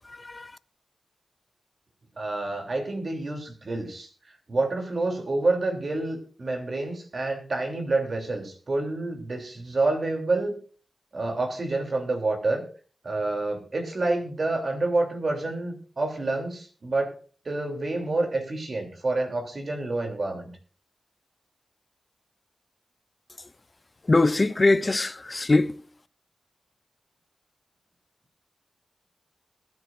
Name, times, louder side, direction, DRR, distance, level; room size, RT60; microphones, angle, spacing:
voice 1, 0.1-0.5 24.1-25.8, left 2 dB, 40° left, 0.7 m, -22 dB
voice 2, 2.2-4.1 4.5-10.6 11.1-12.6 13.0-17.1 17.4-20.5, right 2 dB, 60° right, 3.1 m, -28 dB
21.5 x 9.8 x 2.6 m
cardioid pair, 45°, 0 cm